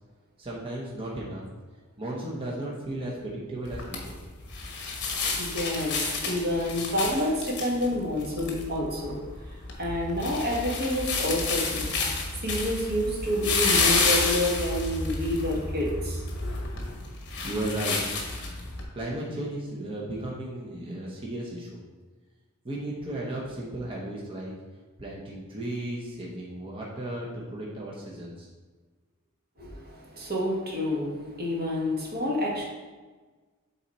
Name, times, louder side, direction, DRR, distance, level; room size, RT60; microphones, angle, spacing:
voice 1, 0.4-1.4 2.0-4.2 7.4-7.5 17.4-18.1 18.9-21.8 22.6-24.6 25.0-28.5 29.6-29.8, right 1 dB, 25° right, -4 dB, 0.9 m, -35 dB
sound 1, 3.7-18.8, left 3 dB, 50° left, 1.2 m, -30 dB
voice 2, 5.4-9.2 9.5-16.9 29.6-32.7, left 1 dB, 45° right, -3 dB, 1.5 m, -29 dB
7.1 x 4.0 x 4.3 m, 1.3 s
head